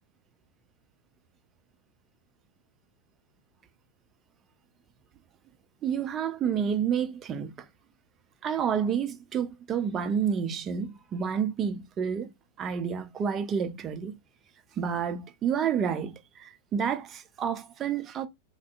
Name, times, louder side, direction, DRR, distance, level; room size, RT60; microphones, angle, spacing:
voice 1, 5.8-7.7 8.4-14.2 14.8-18.3, right 7 dB, 30° right, 0.4 m, -29 dB
3.4 x 2.3 x 2.4 m
figure-of-eight pair, 90°, 0 cm